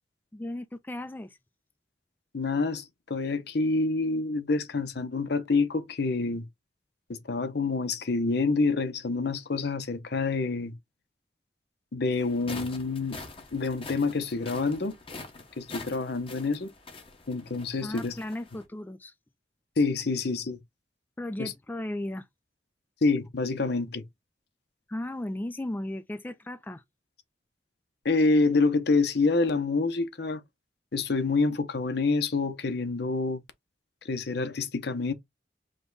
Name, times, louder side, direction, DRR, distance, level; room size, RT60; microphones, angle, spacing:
voice 1, 0.3-1.4 17.8-19.1 21.2-22.3 24.9-26.8, left 1 dB, 10° left, 0.3 m, -35 dB
voice 2, 2.3-6.5 7.1-10.7 11.9-13.2 13.5-15.0 15.6-16.7 17.3-18.2 19.8-20.6 21.4-21.5 23.0-24.0 28.0-30.4 30.9-33.4 34.0-35.1, left 3 dB, 65° left, 0.7 m, -27 dB
sound 1, 12.2-18.6, left 3 dB, 35° left, 1.1 m, -44 dB
5.0 x 2.2 x 3.8 m
head